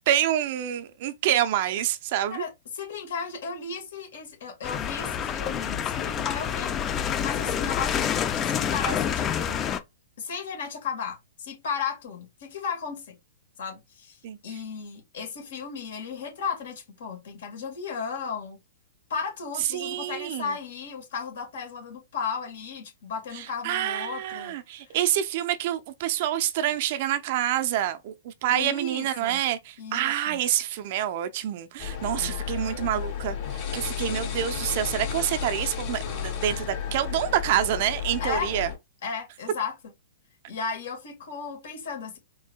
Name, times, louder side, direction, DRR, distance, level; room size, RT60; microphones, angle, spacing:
voice 1, 0.1-2.4 14.2-14.4 19.7-20.5 23.3-38.7, right 11 dB, 50° right, 0.6 m, -27 dB
voice 2, 2.3-9.7 10.2-13.2 13.6-18.6 19.1-25.0 28.5-29.4 29.8-30.4 32.0-32.4 38.2-38.5 39.0-39.7 40.5-42.2, left 5 dB, 65° left, 2.0 m, -35 dB
sound 1, 4.6-9.8, left 8 dB, 25° left, 0.5 m, -28 dB
sound 2, 31.8-38.7, left 8 dB, 45° left, 2.4 m, -33 dB
4.6 x 3.2 x 2.3 m
hypercardioid pair, 115°, 0 cm